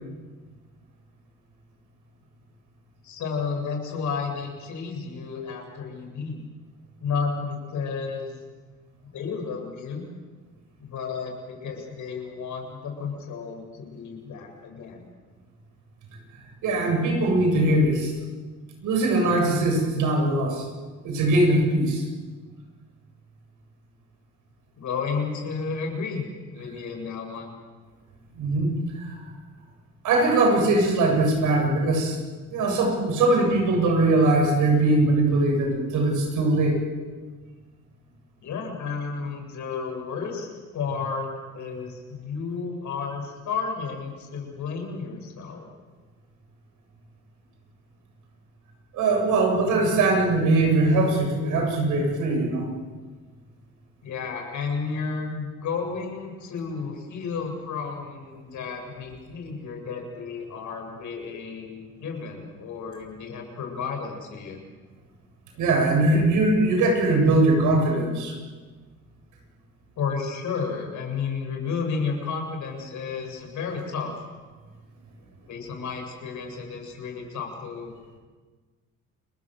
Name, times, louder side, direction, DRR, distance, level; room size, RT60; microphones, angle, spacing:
voice 1, 3.0-6.5 7.0-8.4 9.1-10.0 10.8-15.1 24.8-27.6 38.4-45.7 54.0-64.6 70.0-74.2 75.5-77.9, left 5 dB, 75° left, 2 dB, 7.9 m, -32 dB
voice 2, 16.6-18.1 18.8-20.6 21.0-22.0 28.3-29.1 30.0-32.2 32.5-36.8 48.9-52.7 65.6-68.3, right 2 dB, 85° right, 2 dB, 7.9 m, -21 dB
29.5 x 22.0 x 7.9 m, 1.4 s
cardioid pair, 90°, 30 cm